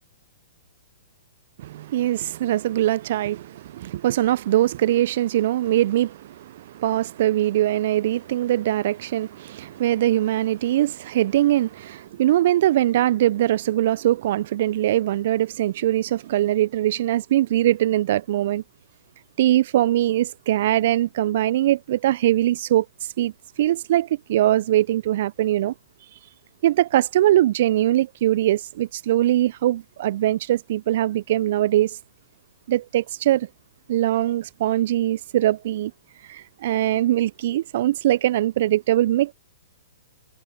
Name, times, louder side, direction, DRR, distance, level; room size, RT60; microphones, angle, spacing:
voice 1, 1.6-18.6 19.4-22.9 23.2-23.3 23.6-25.7 26.6-32.0 32.7-33.5 33.9-35.9 36.3-39.3, right 13 dB, 50° right, 1.0 m, -22 dB
figure-of-eight pair, 115°, 0 cm